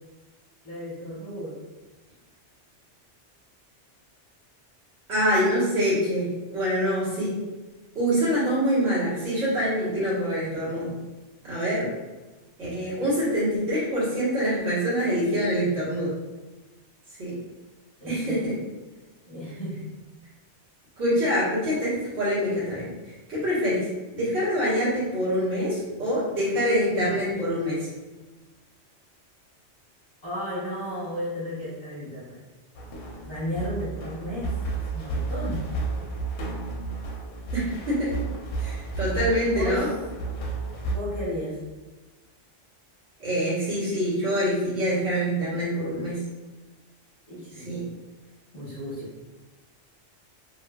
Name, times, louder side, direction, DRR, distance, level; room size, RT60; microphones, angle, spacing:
voice 1, 0.6-1.5 18.0-18.4 19.3-19.9 30.2-32.4 33.2-35.7 39.5-39.9 40.8-41.5 47.3-47.7 48.5-49.1, equal, 40° left, -9 dB, 1.0 m, -34 dB
voice 2, 5.1-7.3 7.9-10.9 11.5-11.9 12.6-16.1 17.2-17.3 18.1-18.5 21.0-22.9 23.3-23.9 24.1-27.9 37.5-38.1 38.6-39.9 43.2-46.2 47.6-47.8, equal, 65° right, -10 dB, 1.5 m, -25 dB
sound 1, 32.7-40.9, right 3 dB, 70° left, 0.8 m, -32 dB
3.0 x 2.3 x 2.2 m, 1.2 s
omnidirectional pair, 1.2 m